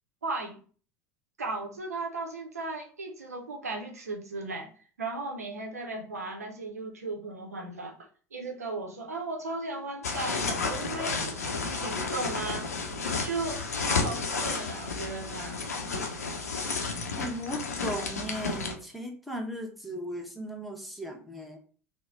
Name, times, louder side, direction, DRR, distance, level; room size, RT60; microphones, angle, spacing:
voice 1, 0.2-0.6 1.4-4.7 5.0-8.0 8.3-12.7 13.2-15.6, right 3 dB, 85° right, 3 dB, 0.7 m, -36 dB
sound 1, 10.0-18.7, left 4 dB, 85° left, 0.5 m, -32 dB
voice 2, 17.2-21.6, equal, ahead, 1 dB, 0.8 m, -37 dB
3.1 x 2.1 x 3.6 m, 0.41 s
figure-of-eight pair, 75°, 8 cm